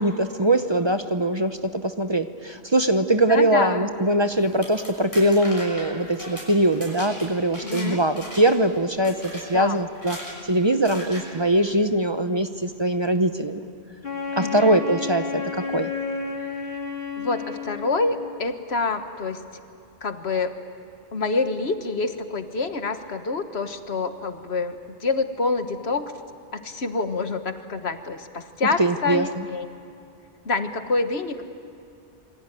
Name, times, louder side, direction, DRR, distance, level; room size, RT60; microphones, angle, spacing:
voice 1, 0.0-9.1 9.5-10.2 10.5-13.6 14.4-15.9 28.8-29.3, right 1 dB, 30° right, 9 dB, 0.9 m, -22 dB
voice 2, 3.3-3.9 7.6-8.0 9.5-9.8 14.4-14.8 17.2-19.4 20.0-20.5 21.1-26.1 26.5-29.7 30.5-31.4, left 3 dB, 80° left, 8 dB, 1.7 m, -27 dB
sound 1, 4.4-7.9 8.2-8.6 9.0-9.5 9.9-10.4 10.8-11.3, equal, 20° left, 6.1 m, -37 dB
Wind instrument woodwind instrument, 14.0-18.4, left 5 dB, 60° left, 2.2 m, -31 dB
27.5 x 23.0 x 9.1 m, 2.6 s
omnidirectional pair, 1.1 m